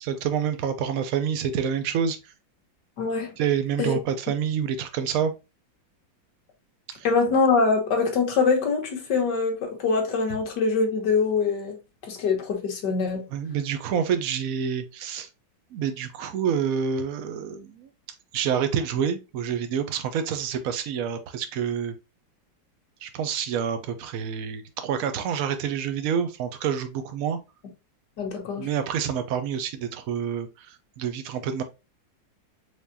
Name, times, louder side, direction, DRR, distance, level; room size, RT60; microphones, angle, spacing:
voice 1, 0.0-2.2 3.4-5.3 6.9-7.1 13.3-15.3 15.7-17.9 18.3-21.9 23.0-27.4 28.6-31.6, right 8 dB, 60° right, 0.9 m, -27 dB
voice 2, 3.0-3.3 3.8-4.0 7.0-11.8 12.0-13.2 28.2-28.7, left 4 dB, 65° left, 1.7 m, -24 dB
4.8 x 3.5 x 2.6 m
omnidirectional pair, 2.1 m